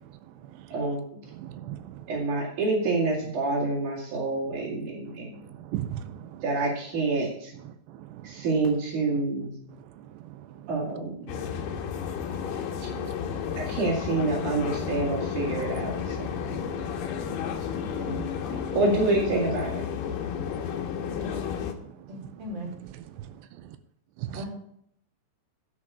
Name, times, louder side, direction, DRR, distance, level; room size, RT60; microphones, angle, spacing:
voice 1, 0.7-1.2 2.1-5.5 6.4-7.5 8.2-9.5 10.7-11.2 12.8-12.9 13.6-16.3 18.7-19.8, right 3 dB, 50° right, 3.6 m, -27 dB
voice 2, 1.3-2.1 5.4-6.4 7.9-8.4 10.1-10.7 11.3-13.0 13.4-13.6 16.4-18.0 20.3-21.5 21.9-22.0 23.2-23.8 24.2-24.4, right 12 dB, 80° right, 2.7 m, -41 dB
sound 1, 11.3-21.7, left 8 dB, 75° left, 2.9 m, -32 dB
voice 3, 22.1-22.7 24.3-24.5, right 1 dB, 30° right, 2.8 m, -37 dB
10.5 x 5.7 x 8.2 m
omnidirectional pair, 5.0 m